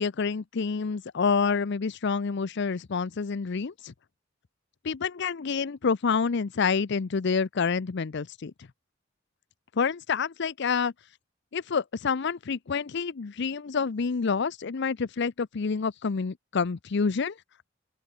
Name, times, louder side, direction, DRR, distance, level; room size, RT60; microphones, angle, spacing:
voice 1, 0.0-3.9 4.8-8.5 9.8-10.9 11.5-17.3, left 5 dB, 65° left, 0.6 m, -28 dB
open air
head